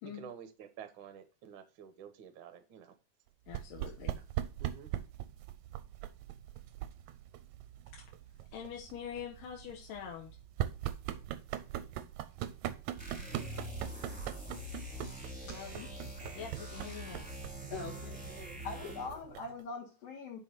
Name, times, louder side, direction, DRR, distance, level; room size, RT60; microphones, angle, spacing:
voice 1, 0.0-2.9 4.2-4.3 4.6-4.9 17.7-17.8 18.2-18.9, right 8 dB, 60° right, 8 dB, 1.2 m, -51 dB
voice 2, 3.5-4.2 7.9-8.0 8.5-10.4 15.4-15.7 16.4-17.3, left 8 dB, 80° left, 0 dB, 2.7 m, -44 dB
sound 1, 3.5-19.6, right 12 dB, 80° right, 1.9 m, -42 dB
sound 2, 13.0-19.2, equal, 5° right, 1.6 m, -44 dB
voice 3, 14.9-15.4 15.7-15.9 17.7-18.2 18.6-20.4, left 4 dB, 55° left, -5 dB, 2.4 m, -43 dB
6.3 x 5.2 x 5.8 m, 0.34 s
omnidirectional pair, 3.8 m